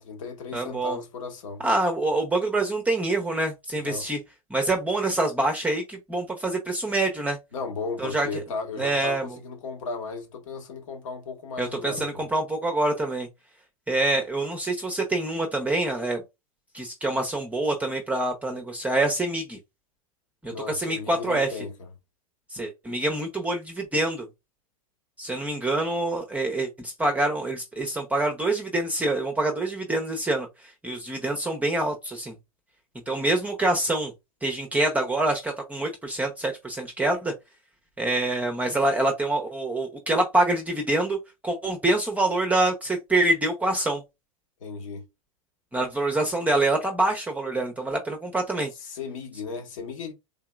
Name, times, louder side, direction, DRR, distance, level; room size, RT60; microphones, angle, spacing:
voice 1, 0.0-1.7 3.8-4.1 7.5-12.2 20.5-21.7 44.6-45.1 48.8-50.1, left 4 dB, 65° left, 1.5 m, -35 dB
voice 2, 0.5-1.0 1.6-4.2 4.5-7.4 8.0-8.3 8.8-9.4 11.6-13.3 13.9-16.2 16.7-19.6 20.4-21.5 22.5-24.3 25.2-32.4 33.1-34.1 34.4-37.3 38.0-41.2 41.4-44.0 45.7-48.7, right 2 dB, 10° right, 0.8 m, -26 dB
3.8 x 2.8 x 2.3 m
hypercardioid pair, 100°, 18 cm